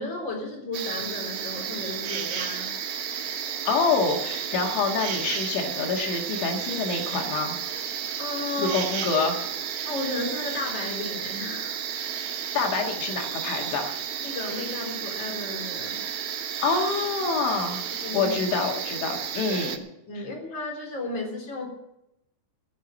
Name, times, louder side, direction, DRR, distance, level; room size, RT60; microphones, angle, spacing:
voice 1, 0.0-2.7 8.2-8.8 9.9-11.8 14.2-16.0 18.0-18.3 20.1-21.7, left 2 dB, 25° left, 0 dB, 3.9 m, -33 dB
sound 1, 0.7-19.8, right 8 dB, 65° right, 2.8 m, -32 dB
voice 2, 3.7-7.6 8.6-9.3 12.5-13.9 16.6-17.8 18.1-19.8 20.2-20.3, left 4 dB, 75° left, 2 dB, 4.1 m, -26 dB
16.0 x 7.6 x 8.7 m, 0.84 s
omnidirectional pair, 5.4 m